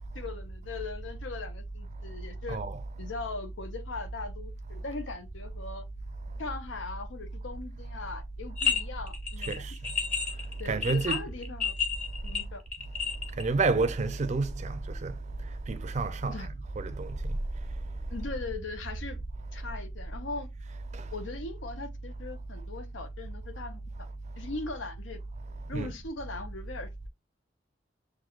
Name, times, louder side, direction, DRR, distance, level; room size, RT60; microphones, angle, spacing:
voice 1, 0.1-2.6 3.0-5.8 6.4-9.6 10.6-11.7 12.2-12.6 16.3-16.5 18.1-19.2 19.5-20.5 21.1-23.8 24.4-25.2 25.7-27.1, left 3 dB, 90° left, 0.7 m, -40 dB
voice 2, 2.5-2.8 9.5-9.7 10.7-11.2 13.4-15.1 15.7-17.2 25.7-25.9, right 3 dB, 40° right, 0.5 m, -29 dB
sound 1, 8.6-8.8 9.1-13.4, left 7 dB, 5° left, 0.6 m, -30 dB
6.0 x 2.3 x 2.3 m
head